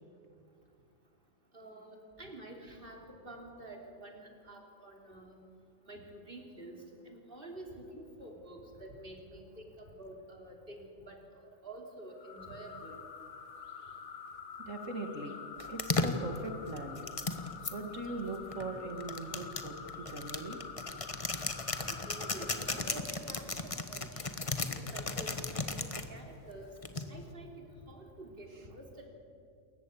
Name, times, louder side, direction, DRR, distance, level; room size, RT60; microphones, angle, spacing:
voice 1, 1.5-5.4 5.9-6.8 7.1-11.2 11.6-13.0 21.9-24.3 24.8-26.7 27.1-29.1, right 1 dB, 40° right, 1 dB, 3.6 m, -48 dB
sound 1, 12.2-23.0, left 6 dB, 75° left, 1.8 m, -47 dB
voice 2, 14.6-15.4 15.7-17.0 17.7-20.6 28.5-28.6, right 2 dB, 65° right, 5 dB, 2.3 m, -40 dB
sound 2, 15.6-17.7 18.5-26.1 26.8-27.3, left 3 dB, 25° left, 1.3 m, -35 dB
28.0 x 14.5 x 8.5 m, 2.5 s
omnidirectional pair, 1.4 m